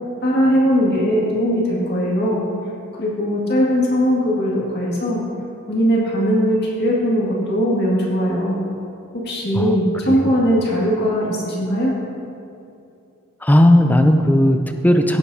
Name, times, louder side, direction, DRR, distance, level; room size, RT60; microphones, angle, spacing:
voice 1, 0.2-2.4 2.9-5.2 5.7-8.6 9.1-12.0, equal, 50° left, -5 dB, 2.1 m, -19 dB
voice 2, 13.4-15.2, left 1 dB, 10° left, 6 dB, 0.5 m, -15 dB
16.5 x 8.3 x 2.8 m, 2.6 s
head